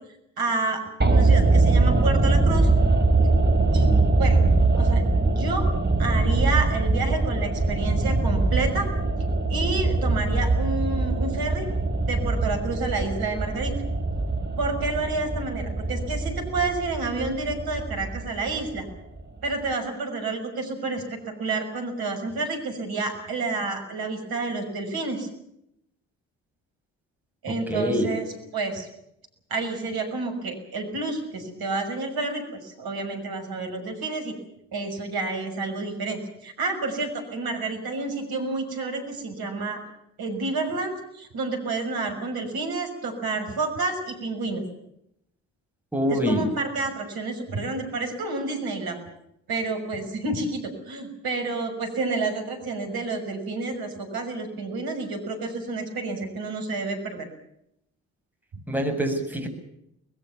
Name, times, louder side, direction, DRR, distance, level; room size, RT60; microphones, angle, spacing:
voice 1, 0.4-2.7 3.7-3.9 4.2-4.4 4.7-5.7 6.0-8.9 9.5-11.7 12.1-13.7 14.6-18.9 19.4-21.0 21.4-25.3 27.4-28.9 29.5-34.3 34.7-39.8 40.2-44.6 46.1-49.0 49.5-57.3 58.5-58.6, right 3 dB, 55° right, 5 dB, 6.2 m, -29 dB
sound 1, 1.0-19.2 19.5-19.6, right 3 dB, 25° right, 4.3 m, -22 dB
voice 2, 27.5-28.1 45.9-46.5 58.7-59.5, equal, 5° right, 4 dB, 7.8 m, -25 dB
24.0 x 21.0 x 7.1 m, 0.78 s
figure-of-eight pair, 45°, 43 cm